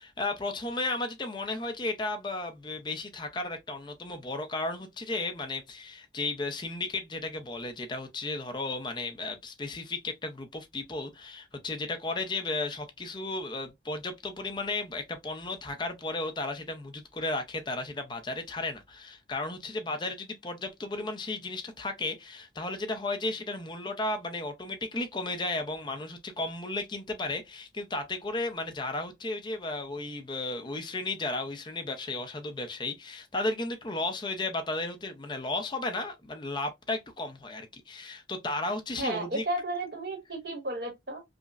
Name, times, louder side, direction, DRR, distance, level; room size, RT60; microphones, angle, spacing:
voice 1, 0.0-39.4, left 2 dB, 25° left, 0.5 m, -34 dB
voice 2, 39.0-41.2, right 2 dB, 65° right, 1.1 m, -33 dB
4.9 x 2.0 x 2.4 m
head